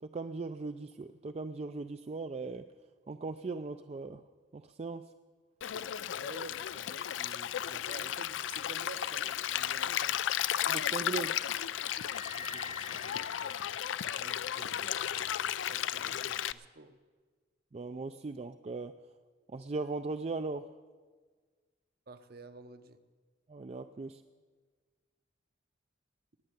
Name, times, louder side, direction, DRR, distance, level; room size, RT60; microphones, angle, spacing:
voice 1, 0.0-2.6 3.1-4.2 4.5-5.1 10.7-11.4 17.7-18.9 19.5-20.7 23.5-24.2, right 3 dB, 35° right, 9 dB, 0.4 m, -38 dB
Stream, 5.6-16.5, left 10 dB, 85° left, 0.4 m, -34 dB
voice 2, 6.2-10.2 12.3-13.5 14.2-17.0 22.1-23.0, right 3 dB, 55° right, 10 dB, 0.8 m, -51 dB
sound 1, 11.8-14.4, left 3 dB, 45° left, 1.0 m, -47 dB
19.5 x 6.6 x 9.6 m, 1.5 s
head